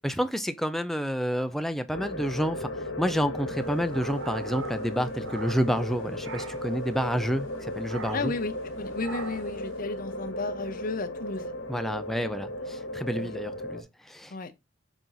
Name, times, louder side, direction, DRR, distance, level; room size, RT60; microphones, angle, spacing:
voice 1, 0.0-2.7 3.0-8.3 11.7-14.3, equal, ahead, 0.5 m, -29 dB
sound 1, 1.9-13.8, left 1 dB, 75° left, 1.4 m, -36 dB
sound 2, 3.5-5.9 6.2-6.8 7.9-8.4 9.0-9.6, right 4 dB, 80° right, 0.8 m, -42 dB
voice 2, 8.1-11.5 13.2-13.3 14.3-14.6, left 3 dB, 45° left, 0.7 m, -33 dB
6.0 x 4.0 x 3.9 m
head